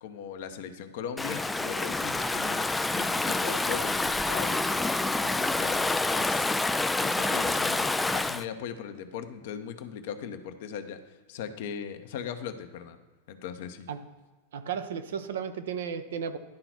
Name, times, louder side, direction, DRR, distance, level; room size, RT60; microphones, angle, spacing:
voice 1, 0.0-6.5 7.0-13.0 13.3-13.9, left 8 dB, 50° left, 8 dB, 0.8 m, -39 dB
Stream / Ocean, 1.2-8.4, left 2 dB, 10° left, 0.3 m, -27 dB
voice 2, 14.5-16.4, right 7 dB, 60° right, 8 dB, 0.7 m, -34 dB
10.5 x 3.9 x 6.0 m, 1.3 s
figure-of-eight pair, 90°, 0 cm